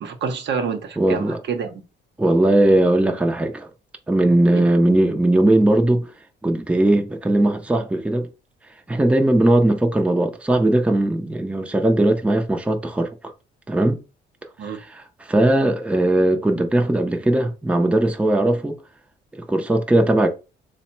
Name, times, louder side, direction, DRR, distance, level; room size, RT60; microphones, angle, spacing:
voice 1, 0.0-1.8 4.5-4.7 14.6-14.8, right 5 dB, 60° right, 0.8 m, -27 dB
voice 2, 1.0-1.4 2.2-3.7 4.1-6.1 6.4-8.3 8.9-13.1 13.7-14.0 14.6-18.8 19.4-20.3, right 1 dB, 5° right, 0.5 m, -19 dB
3.4 x 2.1 x 4.3 m
cardioid pair, 90°, 20 cm